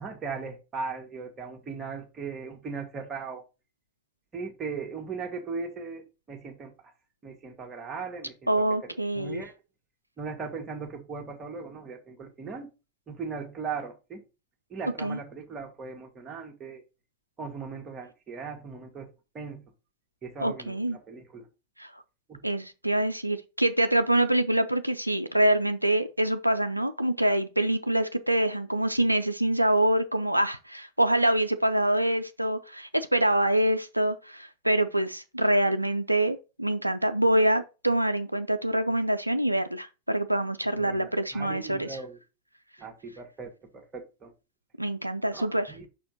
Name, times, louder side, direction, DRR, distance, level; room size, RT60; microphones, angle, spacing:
voice 1, 0.0-3.4 4.3-6.7 7.2-8.5 8.9-9.5 10.2-12.7 13.1-14.2 14.7-16.8 17.4-19.1 19.3-19.6 20.2-21.5 22.3-22.4 40.7-42.2 42.8-44.3 45.3-45.9, right 5 dB, 20° right, 1.6 m, -38 dB
voice 2, 8.5-9.4 15.0-15.2 20.4-21.0 21.8-21.9 22.4-42.0 44.8-45.7, right 1 dB, 85° right, 0.4 m, -25 dB
5.7 x 4.3 x 3.9 m
figure-of-eight pair, 90°, 0 cm